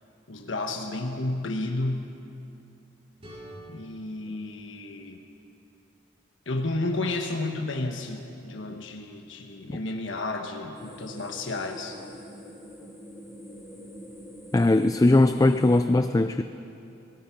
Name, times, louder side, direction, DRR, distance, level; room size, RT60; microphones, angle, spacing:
voice 1, 0.3-2.0 3.7-5.2 6.5-12.0, left 2 dB, 80° left, 3 dB, 1.3 m, -32 dB
sound 1, 3.2-6.1, right 1 dB, 30° right, 5.0 m, -49 dB
sound 2, 10.7-15.8, equal, ahead, 4.9 m, -45 dB
voice 2, 14.5-16.4, left 2 dB, 20° left, 9 dB, 0.4 m, -20 dB
25.0 x 18.0 x 5.9 m, 2.8 s
head